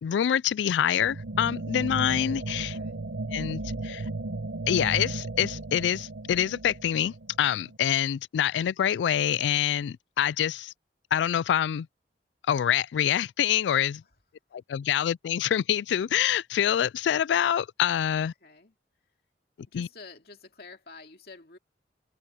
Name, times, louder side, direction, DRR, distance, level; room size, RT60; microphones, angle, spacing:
voice 1, 0.0-2.7 3.3-4.0 4.7-10.7 11.1-11.9 12.5-14.0 14.7-18.3 19.7-19.9, left 9 dB, 85° left, 0.3 m, -26 dB
sound 1, 1.0-7.8, right 2 dB, 80° right, 0.9 m, -35 dB
voice 2, 2.6-3.0 14.0-14.2 18.1-18.8 19.7-21.6, left 4 dB, 55° left, 2.6 m, -49 dB
head